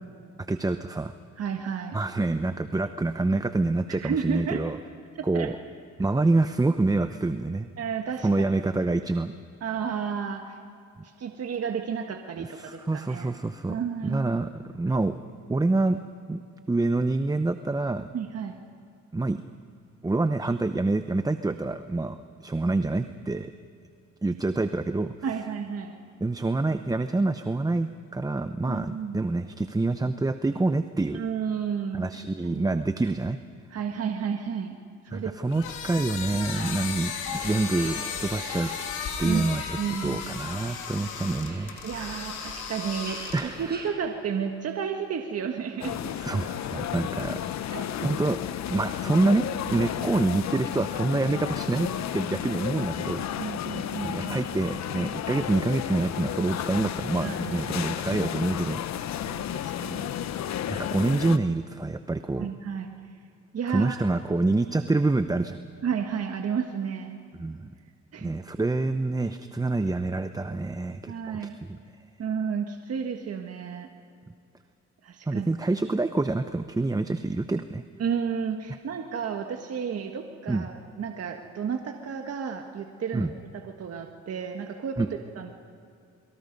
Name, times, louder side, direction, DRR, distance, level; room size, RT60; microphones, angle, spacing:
voice 1, 0.5-1.1 1.9-4.8 5.2-5.6 6.0-7.7 8.2-9.3 12.4-13.8 14.0-15.2 15.5-16.0 16.3-16.4 16.7-18.1 19.1-19.4 20.0-23.5 24.2-25.1 26.2-31.2 31.9-33.4 35.1-38.7 39.2-41.8 43.3-43.6 46.2-47.4 48.0-48.4 48.7-53.3 54.0-59.1 60.7-62.5 63.7-65.6 67.3-67.7 68.2-71.8 75.3-77.8 80.5-80.7 83.1-83.3 85.0-85.1, right 2 dB, 10° right, 10 dB, 0.8 m, -27 dB
voice 2, 1.4-2.0 3.9-4.6 5.1-5.5 7.8-8.5 9.6-10.6 11.0-13.4 13.7-14.4 18.1-18.6 25.2-26.0 28.6-29.2 31.1-32.0 32.4-32.7 33.7-34.8 35.0-35.6 39.2-39.4 39.8-40.2 41.8-46.0 47.7-47.9 52.4-52.9 53.4-54.4 57.2-57.7 59.2-60.1 62.4-62.9 63.5-64.0 65.8-67.2 68.1-68.3 71.1-71.6 72.2-73.9 75.0-75.5 78.0-85.5, right 7 dB, 55° right, 4 dB, 1.6 m, -32 dB
sound 1, 35.5-43.7, left 7 dB, 85° left, 2.8 m, -35 dB
sound 2, 37.3-43.9, right 2 dB, 35° right, 5.3 m, -45 dB
sound 3, 45.8-61.4, left 10 dB, 65° left, 0.9 m, -32 dB
28.5 x 23.0 x 5.4 m, 2.5 s
cardioid pair, 90°, 30 cm